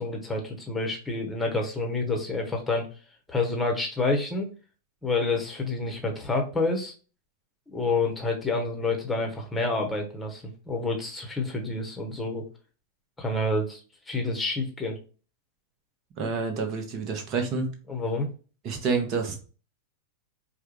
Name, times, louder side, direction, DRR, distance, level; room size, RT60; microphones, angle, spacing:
voice 1, 0.0-2.9 3.3-4.5 5.0-6.9 7.7-12.5 13.2-13.8 14.1-15.0 17.9-18.3, left 3 dB, 10° left, 2 dB, 1.1 m, -28 dB
voice 2, 16.2-17.7 18.6-19.4, right 4 dB, 35° right, 4 dB, 1.0 m, -28 dB
4.7 x 2.3 x 3.1 m, 0.36 s
figure-of-eight pair, 90°, 0 cm